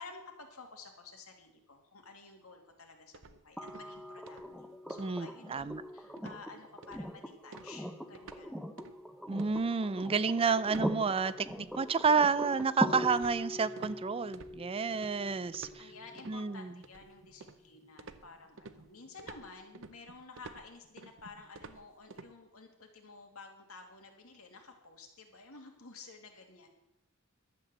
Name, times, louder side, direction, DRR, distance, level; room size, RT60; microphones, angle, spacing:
voice 1, 0.0-8.7 15.8-26.7, left 4 dB, 85° left, 3 dB, 2.3 m, -52 dB
sound 1, 3.1-4.0 4.3-4.6 4.9-5.1 5.5-5.9 6.2-6.4 6.8-7.2 7.5-8.5 8.8-9.0 9.4-14.0 14.3-15.1 15.5-16.4 16.8-17.7 18.0-22.3, right 4 dB, 65° right, 0.8 m, -52 dB
sound 2, 3.6-17.5 19.2-19.3, equal, ahead, 0.7 m, -41 dB
voice 2, 5.0-5.8 9.3-15.9 16.3-16.7, right 5 dB, 25° right, 16 dB, 0.4 m, -30 dB
11.5 x 7.7 x 7.5 m, 0.87 s
head